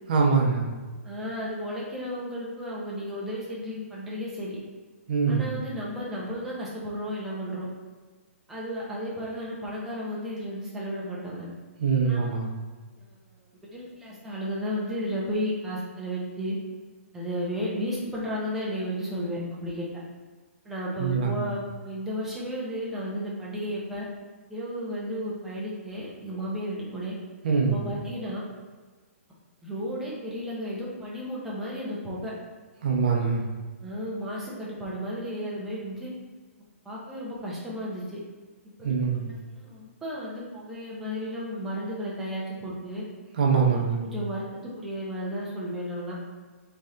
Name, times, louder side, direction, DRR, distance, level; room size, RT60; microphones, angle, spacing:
voice 1, 0.1-0.7 5.1-5.5 11.8-12.5 21.0-21.5 27.4-27.8 32.8-33.4 38.8-39.2 43.4-44.0, right 5 dB, 35° right, 0 dB, 0.7 m, -23 dB
voice 2, 1.0-4.6 5.3-7.7 8.5-11.4 12.0-12.5 13.0-13.2 13.7-16.6 17.1-20.0 20.6-24.1 24.5-27.2 27.7-28.4 29.6-32.3 33.8-36.1 36.8-38.2 39.1-43.0 43.6-46.2, equal, 5° right, -6 dB, 0.6 m, -33 dB
4.1 x 3.3 x 3.7 m, 1.4 s
hypercardioid pair, 180°, 8 cm